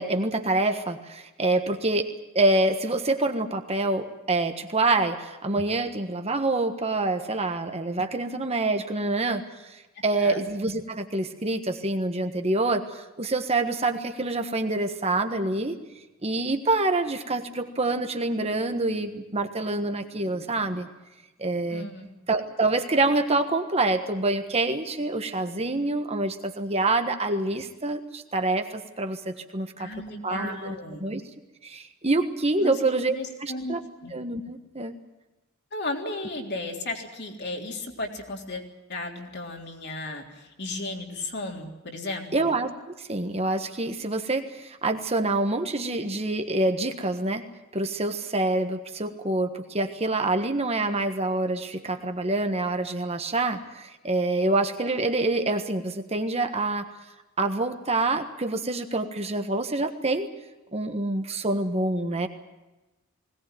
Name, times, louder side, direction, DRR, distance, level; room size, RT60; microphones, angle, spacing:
voice 1, 0.0-2.1 2.3-15.8 16.2-20.9 21.4-21.9 22.3-29.9 30.2-31.2 31.6-33.8 34.1-35.0 42.3-42.7 43.0-47.4 47.7-56.9 57.4-60.3 60.7-62.3, right 2 dB, 30° right, 6 dB, 1.4 m, -26 dB
voice 2, 21.7-22.1 29.8-31.1 32.6-32.8 33.1-33.8 34.0-34.2 35.7-38.6 38.9-42.4, left 2 dB, 50° left, 2 dB, 3.5 m, -34 dB
21.0 x 18.5 x 9.1 m, 1.1 s
head